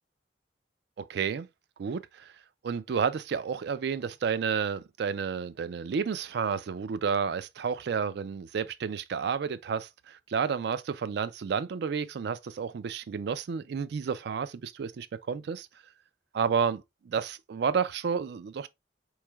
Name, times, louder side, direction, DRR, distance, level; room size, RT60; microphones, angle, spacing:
voice 1, 1.0-1.5 1.8-2.3 2.6-15.7 16.3-18.7, right 6 dB, 65° right, 0.3 m, -31 dB
4.5 x 3.1 x 2.2 m
head